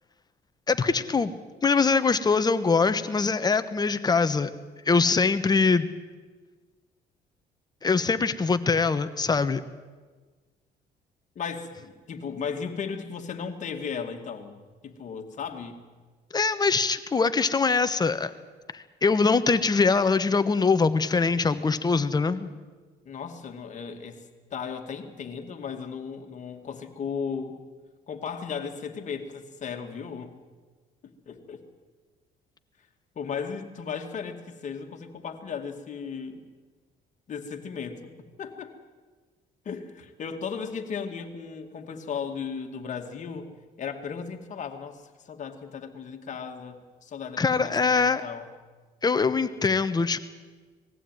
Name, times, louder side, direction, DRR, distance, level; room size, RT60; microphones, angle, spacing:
voice 1, 0.7-1.3 1.6-4.5 4.9-5.9 7.8-9.6 16.3-18.3 18.7-22.5 47.4-48.2 49.0-50.2, left 4 dB, 25° left, 11 dB, 1.1 m, -23 dB
voice 2, 11.4-14.6 14.8-15.8 23.0-27.6 28.1-30.3 31.3-31.7 33.2-36.4 37.3-38.1 38.4-38.7 39.6-48.5, left 6 dB, 45° left, 5 dB, 2.2 m, -36 dB
20.5 x 15.0 x 9.3 m, 1.4 s
cardioid pair, 110°, 17 cm